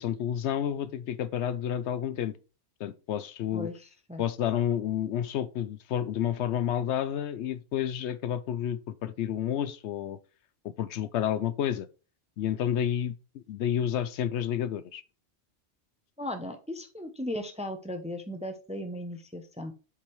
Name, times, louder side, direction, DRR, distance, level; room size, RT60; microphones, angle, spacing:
voice 1, 0.0-2.4 2.8-3.7 4.2-10.2 10.8-11.9 12.4-15.0, left 10 dB, 75° left, 0.8 m, -30 dB
voice 2, 3.5-4.2 16.2-19.7, left 1 dB, 5° right, 0.6 m, -37 dB
7.4 x 5.2 x 3.1 m
omnidirectional pair, 1.2 m